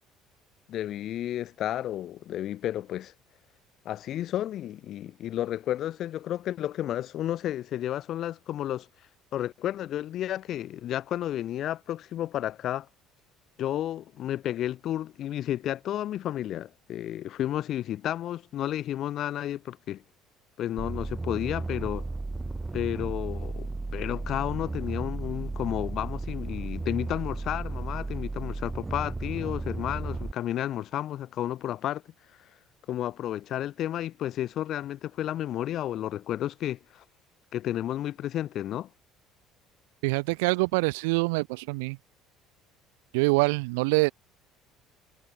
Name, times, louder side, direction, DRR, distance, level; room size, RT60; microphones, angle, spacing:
voice 1, 0.7-3.1 3.8-8.9 9.3-12.9 13.6-20.0 20.6-22.1 22.7-32.0 32.9-37.0 37.5-38.9, left 12 dB, 60° left, 4.4 m, -32 dB
sound 1, 20.8-30.3, right 3 dB, 20° right, 2.9 m, -34 dB
voice 2, 40.0-42.0 43.1-44.1, right 28 dB, 80° right, 1.7 m, -25 dB
hypercardioid pair, 70°, 0 cm